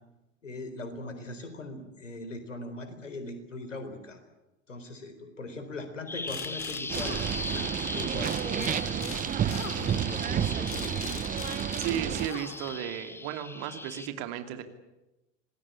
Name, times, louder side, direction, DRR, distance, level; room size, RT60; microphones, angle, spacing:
voice 1, 0.4-4.2 4.7-11.2, left 2 dB, 80° left, 8 dB, 4.2 m, -40 dB
Bird vocalization bird call bird song, 6.1-14.1, left 2 dB, 5° left, 0.9 m, -39 dB
sound 1, 6.3-7.8 8.2-12.9, left 9 dB, 35° left, 2.9 m, -42 dB
sound 2, 6.9-12.3, right 10 dB, 20° right, 0.8 m, -30 dB
voice 2, 11.8-14.6, right 10 dB, 50° right, 8 dB, 2.7 m, -34 dB
26.5 x 19.0 x 8.6 m, 1.0 s
figure-of-eight pair, 75°, 37 cm